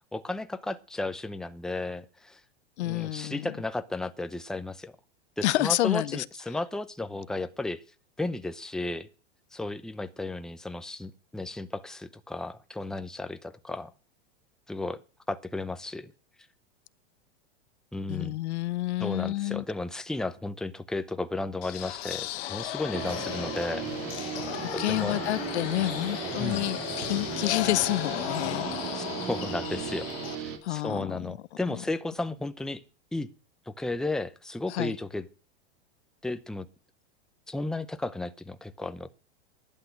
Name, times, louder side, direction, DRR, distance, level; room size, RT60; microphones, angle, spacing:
voice 1, 0.1-2.4 2.8-4.9 5.4-7.8 8.2-9.1 9.5-13.9 14.7-15.0 15.3-16.1 17.9-18.4 19.0-23.9 24.7-25.1 26.4-26.6 28.9-30.1 30.4-32.8 33.1-33.3 33.7-35.2 36.2-36.7 37.5-39.1, left 2 dB, ahead, 0.7 m, -34 dB
voice 2, 2.8-3.5 5.4-6.2 18.1-19.6 24.2-28.9 30.6-31.4 31.7-31.8 34.7-35.0, left 16 dB, 80° left, 0.7 m, -29 dB
sound 1, 21.6-30.3, left 16 dB, 65° left, 1.3 m, -36 dB
sound 2, 22.9-29.8, right 4 dB, 15° right, 1.4 m, -43 dB
Guitar, 22.9-30.6, right 7 dB, 45° right, 2.9 m, -37 dB
11.5 x 8.6 x 7.9 m
hypercardioid pair, 125°, 33 cm